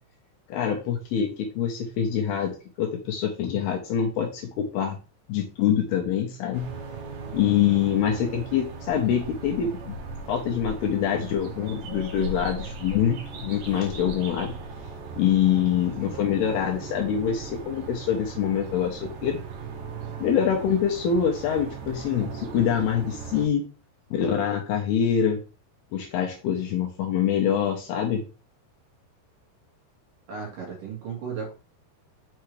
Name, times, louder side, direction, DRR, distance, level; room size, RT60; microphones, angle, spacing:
voice 1, 0.5-5.0 5.3-6.7 7.3-10.0 10.3-14.5 15.2-19.4 20.2-23.6 24.1-25.4 25.9-28.2, left 8 dB, 80° left, 2 dB, 2.3 m, -25 dB
sound 1, 6.5-23.5, right 3 dB, 90° right, 1.8 m, -38 dB
voice 2, 30.3-31.5, right 6 dB, 60° right, -2 dB, 2.6 m, -35 dB
6.4 x 5.7 x 3.2 m, 0.35 s
omnidirectional pair, 5.7 m